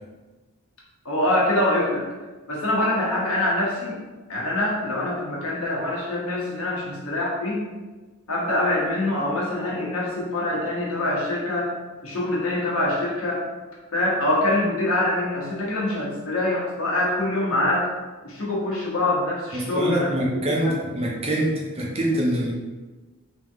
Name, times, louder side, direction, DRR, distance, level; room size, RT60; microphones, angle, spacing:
voice 1, 1.0-2.1 2.5-4.0 4.3-7.7 8.3-11.7 12.0-13.4 13.9-17.9 18.2-20.1 20.6-20.8, left 1 dB, 70° left, -4 dB, 1.1 m, -24 dB
voice 2, 19.5-22.5, right 1 dB, 25° right, -2 dB, 0.6 m, -24 dB
3.5 x 2.9 x 3.5 m, 1.3 s
head